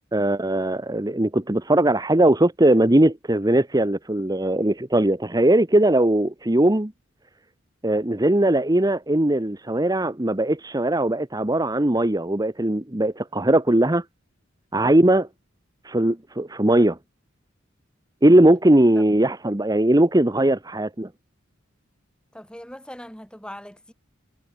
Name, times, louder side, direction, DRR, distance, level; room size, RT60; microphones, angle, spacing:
voice 1, 0.1-6.9 7.8-14.0 14.7-15.3 15.8-17.0 18.2-21.1, right 1 dB, 20° right, 1.2 m, -19 dB
voice 2, 22.3-23.9, equal, 5° left, 4.3 m, -40 dB
head